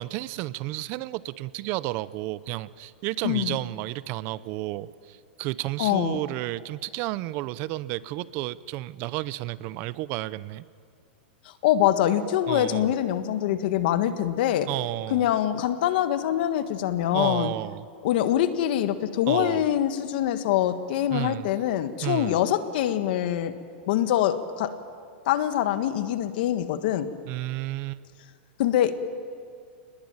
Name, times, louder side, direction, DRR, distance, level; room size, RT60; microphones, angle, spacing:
voice 1, 0.0-10.6 12.5-12.9 14.7-15.3 17.1-17.9 19.3-19.6 21.1-21.5 22.0-22.4 27.3-28.0, right 17 dB, 40° right, 17 dB, 0.7 m, -32 dB
voice 2, 3.2-3.6 5.8-6.2 11.6-14.7 15.1-17.5 18.0-23.6 23.9-24.7 25.2-27.1 28.6-28.9, left 11 dB, 60° left, 10 dB, 1.6 m, -24 dB
28.0 x 20.5 x 9.0 m, 2.2 s
supercardioid pair, 150°, 6 cm